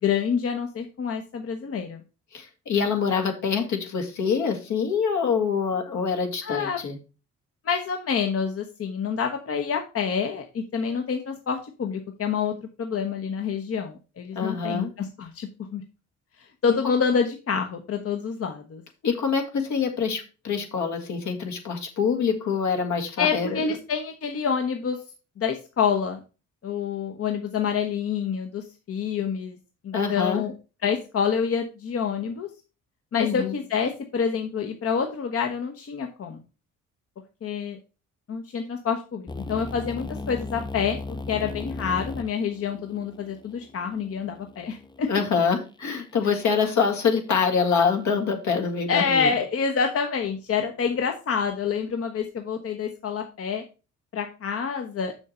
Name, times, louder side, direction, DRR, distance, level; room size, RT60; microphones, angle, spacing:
voice 1, 0.0-2.0 6.4-6.8 7.6-15.8 16.4-18.8 23.2-25.0 25.4-26.2 26.6-29.6 29.8-30.5 30.8-32.5 33.1-36.4 37.4-37.8 38.3-45.1 48.9-53.6 54.1-55.1, left 6 dB, 50° left, 5 dB, 1.0 m, -27 dB
voice 2, 2.3-7.0 14.4-14.9 19.0-23.6 29.9-30.4 33.2-33.5 45.1-49.3, left 6 dB, 70° left, 4 dB, 2.0 m, -25 dB
sound 1, 39.3-45.2, left 2 dB, 15° left, 0.6 m, -37 dB
6.6 x 6.3 x 4.3 m, 0.33 s
cardioid pair, 90°, 30 cm